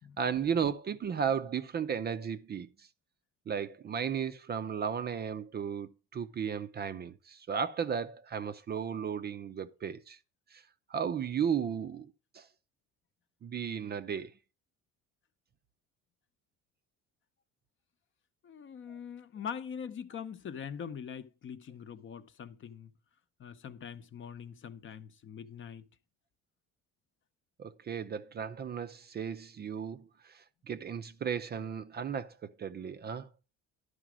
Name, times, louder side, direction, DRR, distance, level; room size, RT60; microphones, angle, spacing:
voice 1, 0.2-2.9 3.5-10.2 10.5-10.6 10.9-12.1 12.3-12.5 13.4-14.3 27.6-33.3, right 7 dB, 30° right, 0.5 m, -35 dB
voice 2, 18.4-22.9 23.4-25.8, left 7 dB, 35° left, 0.7 m, -43 dB
11.5 x 5.0 x 6.1 m
cardioid pair, 120°, 33 cm